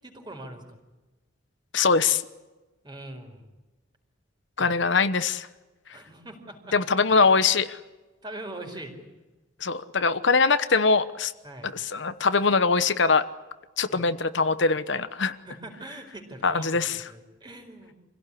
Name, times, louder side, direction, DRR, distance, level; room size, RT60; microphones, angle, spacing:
voice 1, 0.0-0.6 2.8-3.4 4.6-4.7 5.9-6.8 7.1-7.4 8.2-9.0 11.4-11.7 13.9-14.1 15.4-17.9, right 1 dB, 20° right, 3 dB, 4.6 m, -42 dB
voice 2, 1.7-2.2 4.6-5.5 6.7-7.8 9.6-11.3 11.6-13.2 13.8-15.4 16.4-17.0, left 4 dB, 65° left, 12 dB, 1.0 m, -22 dB
26.5 x 17.0 x 10.0 m, 1.1 s
head